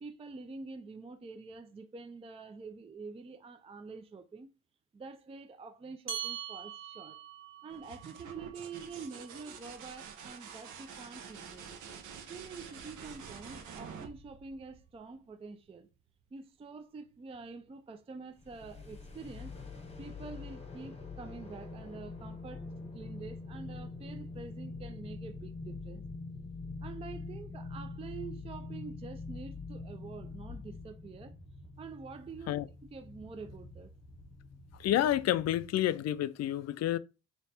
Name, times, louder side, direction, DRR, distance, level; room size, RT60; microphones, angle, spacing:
voice 1, 0.0-4.5 4.9-7.2 7.6-11.7 12.3-15.9 16.3-19.6 20.0-22.7 22.9-26.1 26.8-31.3 31.8-33.9, right 4 dB, 20° right, 0.4 m, -47 dB
sound 1, 6.1-10.9, right 9 dB, 45° right, 1.3 m, -45 dB
sound 2, 7.7-15.3 17.1-17.6, right 6 dB, 75° right, 0.9 m, -48 dB
sound 3, 18.4-35.7, left 3 dB, 20° left, 1.0 m, -45 dB
voice 2, 34.8-37.0, left 12 dB, 60° left, 0.4 m, -29 dB
3.3 x 2.8 x 4.2 m
cardioid pair, 90°, 30 cm